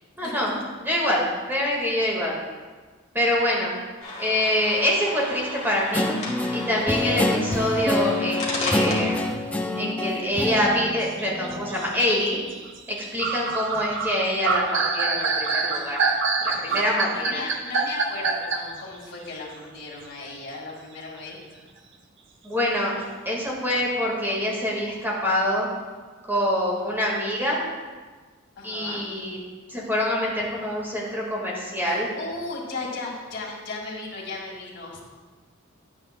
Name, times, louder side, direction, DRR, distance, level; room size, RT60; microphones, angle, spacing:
voice 1, 0.2-0.5 0.8-2.4 3.1-3.7 4.2-6.1 6.5-9.1 9.8-12.4 13.1-16.1 16.4-17.4 22.4-25.7 26.3-27.6 28.6-29.4 29.7-32.1, left 1 dB, 10° right, -3 dB, 1.8 m, -25 dB
sound 1, 4.0-9.2, left 2 dB, 35° left, 1.8 m, -34 dB
Guitar, 5.9-11.7, left 2 dB, 5° left, 0.4 m, -26 dB
sound 2, 11.0-18.8, right 4 dB, 60° right, 0.7 m, -25 dB
voice 2, 16.7-21.4 28.6-29.0 31.9-35.0, left 3 dB, 55° left, -3 dB, 2.1 m, -36 dB
11.5 x 8.9 x 2.2 m, 1.4 s
head